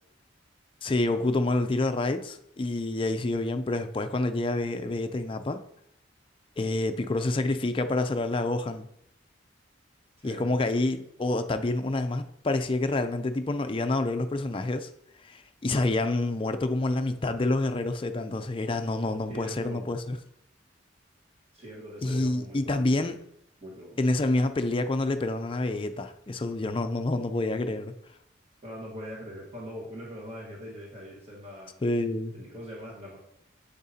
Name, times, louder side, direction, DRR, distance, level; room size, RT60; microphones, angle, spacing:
voice 1, 0.8-5.6 6.6-8.9 10.2-14.9 15.2-20.2 22.0-23.2 24.0-27.9 31.8-32.4, left 2 dB, 25° left, 0.4 m, -28 dB
voice 2, 10.2-10.6 19.3-19.8 21.5-23.1 23.6-24.0 28.6-31.8 32.3-33.2, equal, 30° right, 1.4 m, -42 dB
8.6 x 7.2 x 2.8 m
head